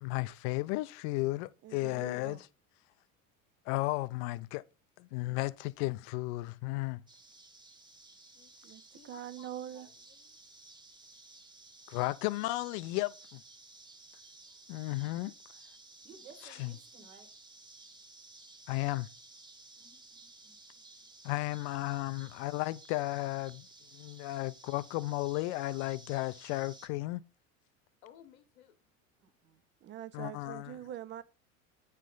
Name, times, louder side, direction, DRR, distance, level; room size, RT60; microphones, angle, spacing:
voice 1, 0.0-2.5 3.7-4.6 5.0-7.0 11.9-13.4 14.7-15.3 16.6-16.7 18.7-19.1 21.2-23.6 23.9-27.2 30.1-30.8, left 19 dB, 55° left, 0.5 m, -34 dB
voice 2, 1.6-2.4 8.6-9.9 29.8-31.2, right 12 dB, 30° right, 0.4 m, -44 dB
sound 1, 7.1-26.9, right 2 dB, 10° right, 1.1 m, -55 dB
voice 3, 8.3-10.4 14.3-14.7 19.8-20.1 20.8-21.1 28.0-28.9, left 10 dB, 75° left, 1.1 m, -61 dB
voice 4, 16.0-17.3 19.8-20.6 29.2-29.6, right 4 dB, 75° right, 1.7 m, -57 dB
9.0 x 3.2 x 3.8 m
hypercardioid pair, 80°, 41 cm